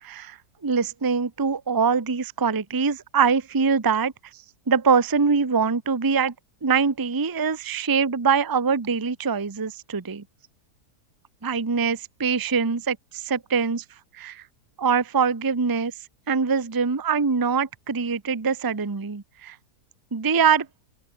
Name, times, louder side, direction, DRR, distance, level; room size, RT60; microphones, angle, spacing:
voice 1, 0.0-0.4 0.6-4.1 4.7-6.3 6.6-10.2 11.4-13.8 14.1-14.4 14.8-15.9 16.3-19.6 20.1-20.7, right 5 dB, 20° right, 0.6 m, -23 dB
open air
omnidirectional pair, 1.8 m